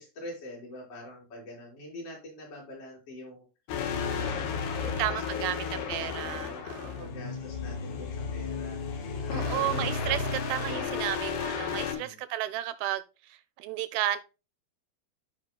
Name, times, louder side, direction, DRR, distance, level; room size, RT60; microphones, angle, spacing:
voice 1, 0.0-3.4 3.9-9.6 11.7-12.2, left 1 dB, 55° left, 5.4 m, -45 dB
sound 1, 3.7-11.9, left 6 dB, 80° left, 3.4 m, -33 dB
voice 2, 4.8-7.1 9.3-14.2, right 14 dB, 85° right, 2.2 m, -33 dB
15.0 x 5.2 x 2.3 m
omnidirectional pair, 4.6 m